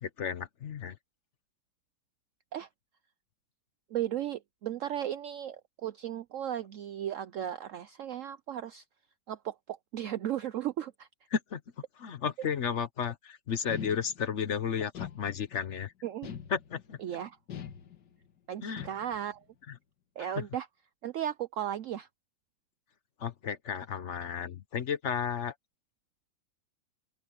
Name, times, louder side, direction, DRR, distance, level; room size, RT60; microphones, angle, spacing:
voice 1, 0.0-1.0 11.3-11.6 12.0-15.9 16.5-17.0 18.6-18.9 20.4-20.5 23.2-25.5, left 7 dB, 50° left, 1.0 m, -33 dB
voice 2, 3.9-8.8 9.3-11.1 16.0-16.3 17.0-17.4 18.5-19.4 20.2-20.7 21.0-22.1, right 11 dB, 75° right, 0.7 m, -35 dB
sound 1, 13.7-14.5 14.9-15.7 16.2-17.0 17.5-18.3 18.8-19.4, left 9 dB, 65° left, 2.1 m, -43 dB
open air
omnidirectional pair, 2.0 m